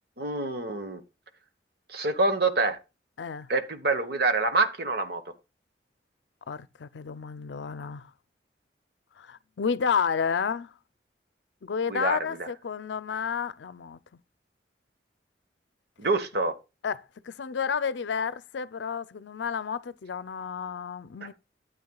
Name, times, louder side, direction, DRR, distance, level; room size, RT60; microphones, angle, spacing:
voice 1, 0.2-1.0 1.9-2.8 3.5-5.2 11.9-12.4 16.0-16.5 21.2-21.3, right 3 dB, 60° right, 1.2 m, -26 dB
voice 2, 3.2-3.5 6.5-8.1 9.2-10.7 11.6-14.0 16.8-21.3, left 6 dB, 85° left, 0.5 m, -31 dB
12.5 x 8.3 x 2.3 m
head